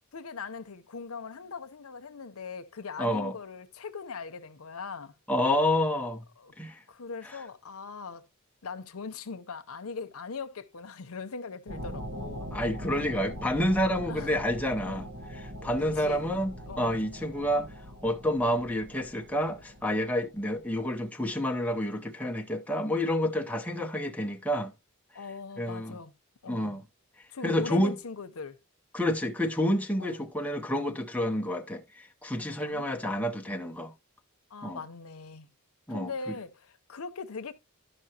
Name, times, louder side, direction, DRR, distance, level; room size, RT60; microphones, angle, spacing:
voice 1, 0.1-5.1 6.4-6.5 6.9-8.2 8.6-12.5 14.1-14.3 14.8-15.1 16.0-16.3 16.7-17.0 25.1-26.1 26.4-26.8 27.3-28.6 30.0-30.2 32.6-32.9 34.5-35.5 35.9-37.5, left 5 dB, 80° left, 0.7 m, -40 dB
voice 2, 3.0-3.3 5.3-6.2 6.6-6.8 7.2-7.4 12.5-17.7 18.0-24.7 25.6-26.0 26.5-26.8 27.4-28.0 28.9-33.9 34.6-34.8 35.9-36.3, left 1 dB, 5° left, 0.6 m, -29 dB
sound 1, 11.7-20.8, equal, 65° right, 1.1 m, -41 dB
12.0 x 5.5 x 2.8 m
head